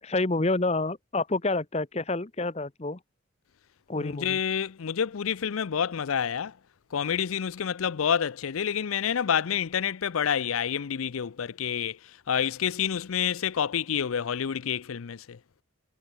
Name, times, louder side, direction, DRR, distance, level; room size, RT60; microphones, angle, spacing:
voice 1, 0.0-3.0 3.9-4.4, left 2 dB, 30° left, 0.9 m, -28 dB
voice 2, 4.0-6.5 6.9-12.0 12.3-15.4, left 8 dB, 90° left, 0.5 m, -28 dB
head